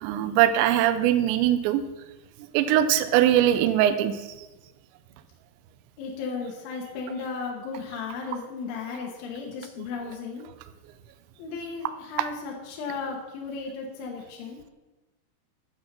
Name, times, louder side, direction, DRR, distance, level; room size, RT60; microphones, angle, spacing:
voice 1, 0.0-1.8 2.5-4.2, right 12 dB, 85° right, 10 dB, 2.6 m, -21 dB
voice 2, 6.0-10.4 11.4-14.6, left 4 dB, 75° left, 0 dB, 3.6 m, -35 dB
9.6 x 8.3 x 5.9 m, 1.1 s
omnidirectional pair, 5.7 m